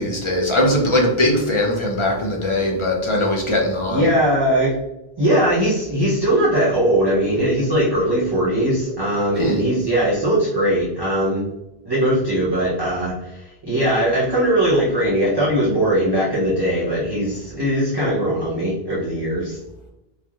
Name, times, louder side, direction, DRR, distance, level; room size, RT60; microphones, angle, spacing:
voice 1, 0.0-4.1 9.4-9.6, left 1 dB, 40° left, 0 dB, 0.4 m, -20 dB
voice 2, 3.9-4.7 5.2-11.4 11.8-19.6, right 1 dB, 30° right, -7 dB, 0.6 m, -20 dB
3.1 x 2.6 x 2.3 m, 0.93 s
omnidirectional pair, 1.1 m